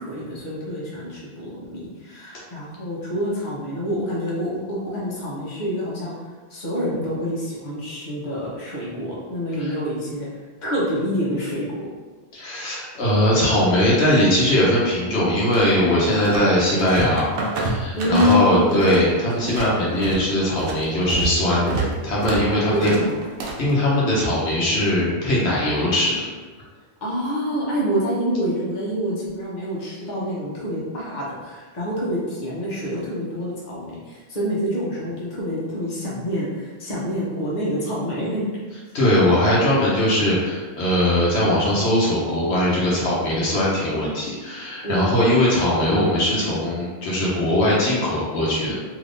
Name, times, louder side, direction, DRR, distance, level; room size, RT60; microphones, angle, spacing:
voice 1, 0.0-6.1 6.5-10.3 10.6-11.8 18.0-19.0 22.7-23.2 27.0-38.4 44.8-45.1, equal, 45° left, -7 dB, 1.0 m, -26 dB
voice 2, 12.3-17.3 17.5-22.9 23.6-26.1 38.9-48.7, left 1 dB, 80° left, -6 dB, 1.1 m, -20 dB
sound 1, 15.5-16.5 16.8-19.0 19.3-23.7, right 3 dB, 65° right, 0.7 m, -28 dB
3.4 x 3.0 x 2.5 m, 1.3 s
omnidirectional pair, 1.1 m